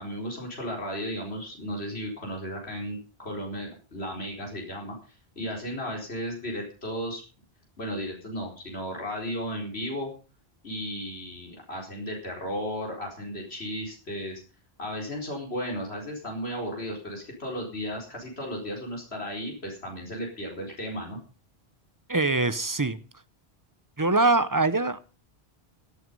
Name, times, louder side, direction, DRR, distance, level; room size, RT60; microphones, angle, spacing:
voice 1, 0.0-7.2 7.8-10.1 10.6-14.4 14.8-21.2, equal, 80° left, -1 dB, 4.7 m, -34 dB
voice 2, 22.1-23.0 24.0-25.0, right 3 dB, 20° right, 14 dB, 0.7 m, -23 dB
17.0 x 9.4 x 5.4 m, 0.35 s
omnidirectional pair, 1.1 m